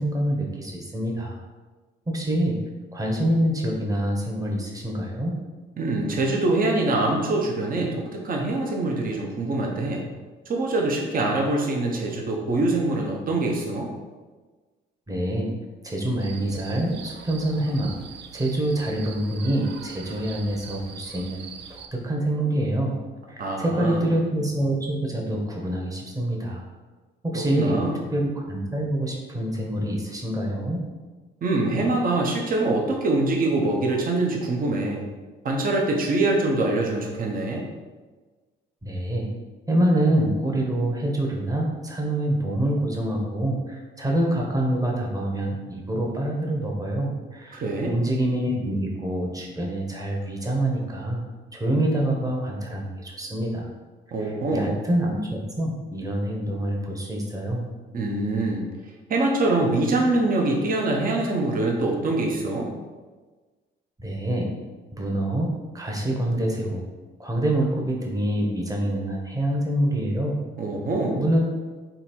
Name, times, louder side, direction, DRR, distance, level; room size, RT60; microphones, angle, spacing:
voice 1, 0.0-1.4 2.1-2.6 2.9-5.4 15.1-15.5 15.8-17.9 18.3-21.4 21.7-23.0 23.3-26.6 27.2-27.8 28.1-30.8 38.8-39.3 39.7-51.2 51.5-53.7 54.2-57.7 64.0-64.5 64.9-66.8 67.2-70.4 71.1-71.4, right 1 dB, 15° right, -1 dB, 1.0 m, -26 dB
voice 2, 5.8-7.9 8.2-10.0 10.5-13.9 23.4-24.0 27.3-28.0 31.4-35.0 35.4-37.6 47.5-47.9 54.1-54.8 57.9-58.6 59.1-62.7 70.6-71.2, right 2 dB, 45° right, 0 dB, 0.8 m, -24 dB
sound 1, 16.2-21.9, right 7 dB, 60° right, 0.4 m, -42 dB
3.9 x 2.9 x 4.4 m, 1.3 s
cardioid pair, 90°, 20 cm